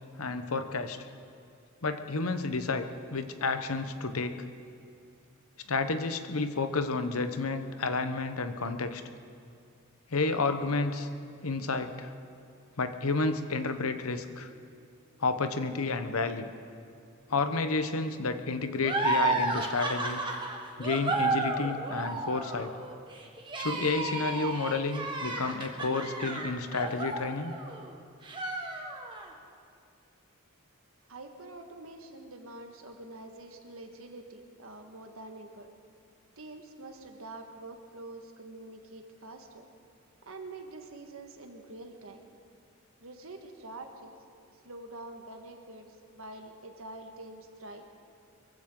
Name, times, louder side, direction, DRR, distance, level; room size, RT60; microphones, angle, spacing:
voice 1, 0.2-1.1 1.8-4.5 5.7-9.0 10.1-11.1 11.4-12.1 12.8-14.5 15.2-16.5 17.3-20.2 20.8-22.7 23.6-27.6, left 3 dB, 85° left, 9 dB, 1.0 m, -31 dB
sound 1, 18.8-27.9 28.2-29.3, right 3 dB, 25° right, 1.6 m, -32 dB
voice 2, 31.1-35.7 36.4-39.6 40.2-42.4 43.0-44.1 44.6-45.9 46.1-47.8, right 2 dB, 75° right, 4 dB, 1.6 m, -46 dB
23.5 x 15.5 x 3.8 m, 2.4 s
head